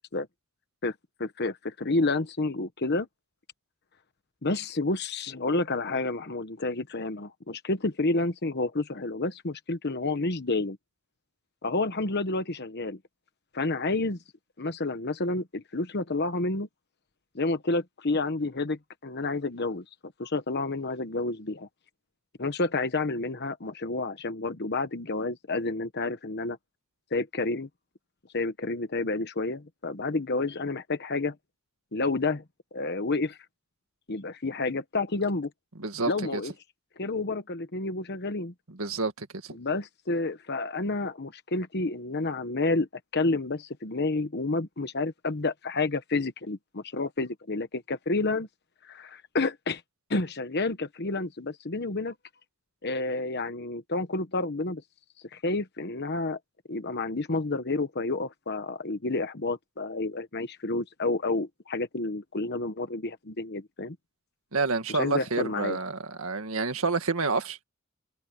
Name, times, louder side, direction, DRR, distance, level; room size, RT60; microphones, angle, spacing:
voice 1, 1.2-3.1 4.4-10.8 11.6-13.0 13.5-14.2 14.6-16.7 17.3-19.8 20.2-21.7 22.4-26.6 27.1-27.7 28.3-31.3 31.9-32.4 32.7-33.4 34.1-35.5 36.1-36.5 37.0-38.5 39.5-42.9 43.1-48.5 48.8-49.8 50.1-52.1 52.8-54.8 55.3-56.4 56.7-64.0 64.9-65.8, left 3 dB, 50° left, 1.2 m, -30 dB
voice 2, 35.8-36.4 38.7-39.6 64.5-67.6, right 4 dB, 70° right, 2.0 m, -29 dB
head